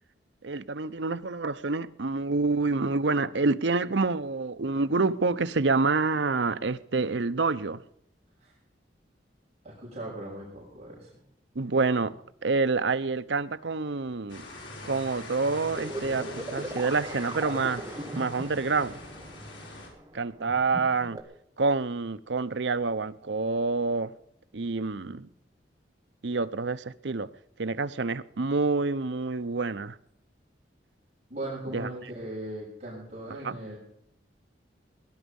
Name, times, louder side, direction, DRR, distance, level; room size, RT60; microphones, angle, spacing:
voice 1, 0.4-7.8 11.5-12.1 12.4-14.5 14.8-17.8 18.1-19.0 20.1-21.2 21.6-24.1 24.5-25.3 26.2-27.3 27.6-30.0 31.7-31.9 33.4-33.6, right 3 dB, 80° right, 0.8 m, -27 dB
voice 2, 9.6-11.2 31.3-33.8, right 1 dB, 35° right, 7.1 m, -38 dB
sound 1, 14.3-19.9, left 2 dB, 85° left, 5.3 m, -43 dB
sound 2, 15.8-21.2, right 1 dB, 20° right, 1.6 m, -39 dB
19.5 x 11.5 x 5.4 m
head